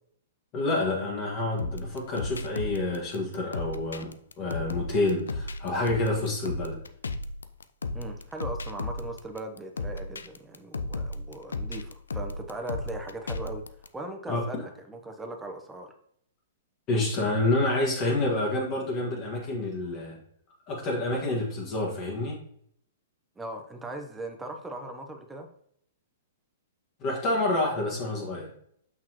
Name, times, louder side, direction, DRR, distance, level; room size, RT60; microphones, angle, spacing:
voice 1, 0.5-6.8 14.3-14.4 16.9-20.2 20.7-22.4 27.0-28.5, left 2 dB, 35° left, -2 dB, 1.7 m, -28 dB
sound 1, 1.6-13.9, left 2 dB, 80° left, 0.4 m, -35 dB
voice 2, 7.9-13.6 13.9-15.9 23.4-25.5, right 2 dB, 10° right, 4 dB, 1.0 m, -39 dB
6.1 x 5.8 x 3.0 m, 0.67 s
figure-of-eight pair, 110°, 0 cm